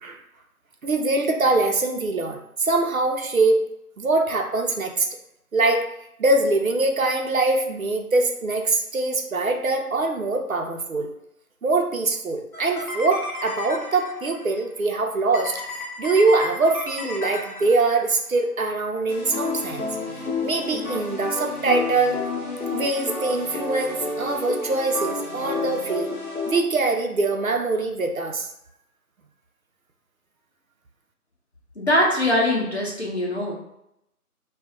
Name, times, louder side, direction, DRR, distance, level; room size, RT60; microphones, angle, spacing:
voice 1, 0.8-3.6 4.0-5.1 5.5-5.9 6.2-11.1 11.6-15.6 16.0-19.9 20.4-22.2 22.7-26.1 26.5-28.5, right 3 dB, 65° right, 3 dB, 0.6 m, -23 dB
sound 1, 12.5-14.5 15.3-18.2 19.1-26.6, left 3 dB, 70° left, 1.0 m, -31 dB
voice 2, 31.8-33.5, left 1 dB, 45° left, -2 dB, 0.7 m, -22 dB
2.4 x 2.2 x 3.7 m, 0.81 s
figure-of-eight pair, 160°, 45 cm